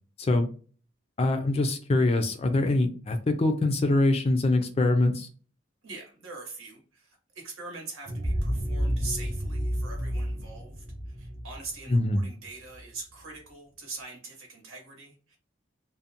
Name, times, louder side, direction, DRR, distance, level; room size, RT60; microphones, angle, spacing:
voice 1, 1.2-5.3 11.9-12.2, left 2 dB, 30° left, 6 dB, 0.3 m, -24 dB
voice 2, 5.8-15.4, right 3 dB, 80° right, 1 dB, 1.0 m, -42 dB
sound 1, 8.1-12.8, equal, 35° right, 0.4 m, -31 dB
2.5 x 2.1 x 2.7 m, 0.40 s
head